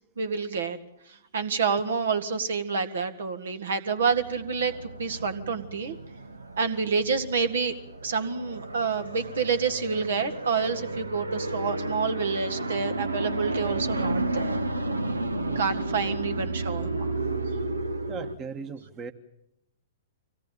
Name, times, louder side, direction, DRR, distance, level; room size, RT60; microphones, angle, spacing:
voice 1, 0.2-0.8 1.3-4.7 5.0-6.0 6.6-7.7 8.0-14.6 15.6-17.2, right 5 dB, 60° right, 10 dB, 1.8 m, -28 dB
sound 1, 4.0-18.4, right 2 dB, 80° right, 1.4 m, -32 dB
voice 2, 18.1-19.1, right 5 dB, 25° right, 8 dB, 1.5 m, -38 dB
25.0 x 17.5 x 9.0 m, 0.81 s
figure-of-eight pair, 110°, 0 cm